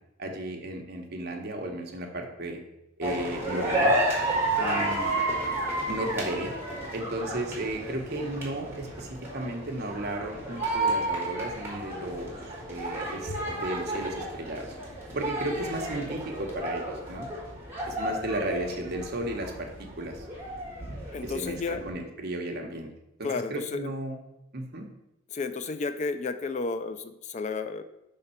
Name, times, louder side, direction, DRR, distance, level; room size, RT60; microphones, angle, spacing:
voice 1, 0.2-2.6 3.0-3.9 4.6-5.1 5.9-6.5 6.9-12.4 12.7-14.7 15.1-17.3 17.9-20.3 21.2-22.9 23.2-24.2 24.5-24.9, right 1 dB, 50° right, 2 dB, 1.0 m, -34 dB
sound 1, 3.0-21.9, right 1 dB, 10° right, 1.6 m, -32 dB
voice 2, 21.1-21.8 23.2-23.9 25.3-27.8, left 4 dB, 35° left, 9 dB, 0.3 m, -32 dB
5.4 x 3.6 x 5.5 m, 0.88 s
head